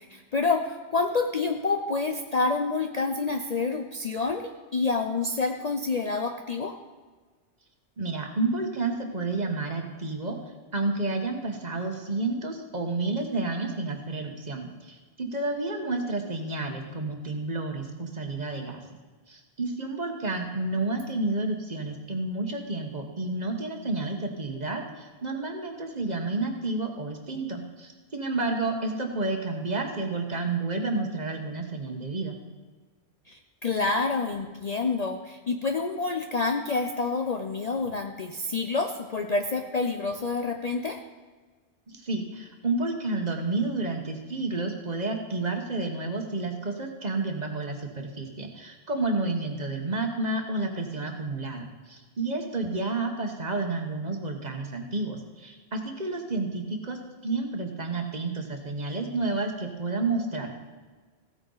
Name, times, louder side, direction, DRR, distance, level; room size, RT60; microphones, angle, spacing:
voice 1, 0.1-0.6 0.9-6.7 33.3-41.0 49.2-49.3, left 3 dB, 45° left, 5 dB, 0.6 m, -28 dB
voice 2, 8.0-10.4 10.7-18.8 19.3-32.4 41.9-60.5, right 2 dB, 40° right, 3 dB, 1.3 m, -30 dB
15.5 x 8.9 x 4.0 m, 1.4 s
omnidirectional pair, 1.2 m